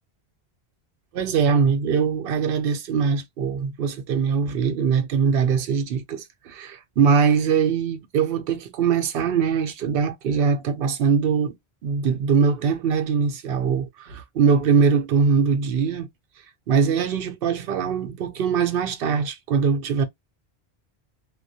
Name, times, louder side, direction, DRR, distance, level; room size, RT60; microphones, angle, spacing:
voice 1, 1.1-11.5 11.8-16.1 16.7-20.0, right 6 dB, 65° right, 0.7 m, -22 dB
2.2 x 2.1 x 2.6 m
omnidirectional pair, 1.1 m